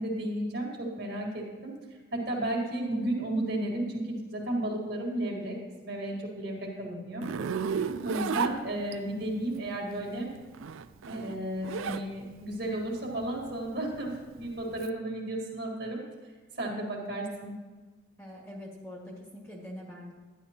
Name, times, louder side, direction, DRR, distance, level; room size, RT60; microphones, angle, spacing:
voice 1, 0.0-1.7 2.1-7.3 7.7-10.3 11.1-16.0 16.6-17.5, right 1 dB, 55° right, 0 dB, 1.8 m, -33 dB
Zipper (clothing), 7.2-9.2 10.4-12.1 12.4-14.9, right 6 dB, 85° right, 0.4 m, -33 dB
voice 2, 18.2-20.1, left 1 dB, 15° left, -3 dB, 1.7 m, -44 dB
11.0 x 10.5 x 2.9 m, 1.3 s
head